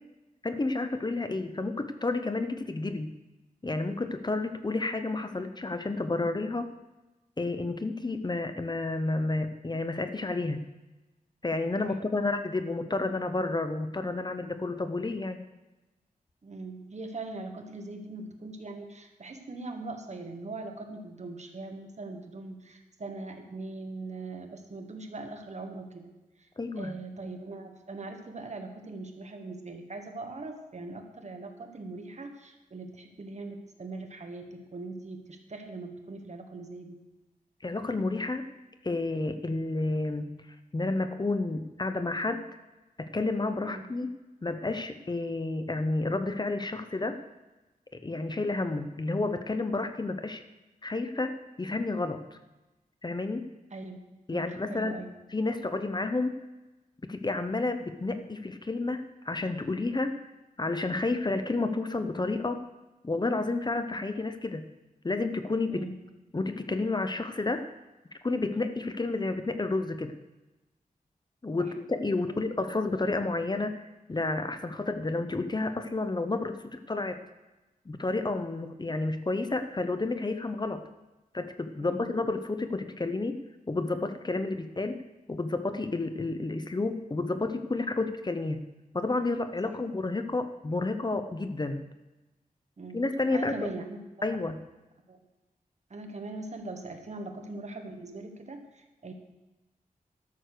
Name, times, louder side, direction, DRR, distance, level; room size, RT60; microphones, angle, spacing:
voice 1, 0.4-3.2 3.6-6.7 7.4-10.6 11.4-15.4 26.6-26.9 37.6-38.5 38.8-40.4 40.7-42.5 43.0-44.1 44.4-47.2 47.9-50.4 50.8-52.4 53.0-53.4 54.3-55.0 55.3-56.4 57.1-60.3 60.6-62.6 63.0-64.6 65.0-65.8 66.3-67.7 68.2-70.1 71.4-73.8 74.1-77.2 77.9-80.8 81.3-83.4 83.7-85.0 85.3-88.7 88.9-91.8 92.9-93.7 94.2-94.6, left 2 dB, 30° left, 9 dB, 0.7 m, -30 dB
voice 2, 11.8-12.3 16.4-26.1 26.8-37.0 43.6-43.9 53.7-54.0 54.3-55.1 65.7-66.2 71.6-71.7 72.3-72.4 81.8-82.1 89.6-89.7 92.8-93.0 93.3-94.0 95.1-95.2 95.9-99.1, right 3 dB, 50° right, 5 dB, 1.4 m, -41 dB
12.0 x 6.5 x 6.6 m, 1.1 s
wide cardioid pair, 90°, 15 cm